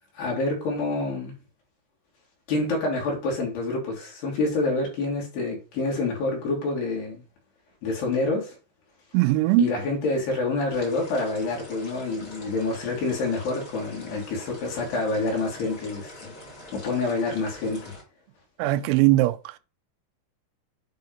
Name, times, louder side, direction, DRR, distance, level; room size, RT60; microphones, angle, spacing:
voice 1, 0.2-1.3 2.5-7.2 7.8-8.5 9.6-16.3 16.7-17.9, left 3 dB, 55° left, 4.2 m, -27 dB
voice 2, 9.1-9.7 18.6-19.6, right 18 dB, 90° right, 3.3 m, -20 dB
sound 1, 10.7-18.0, left 1 dB, 30° left, 3.4 m, -44 dB
8.6 x 4.3 x 5.3 m
omnidirectional pair, 5.9 m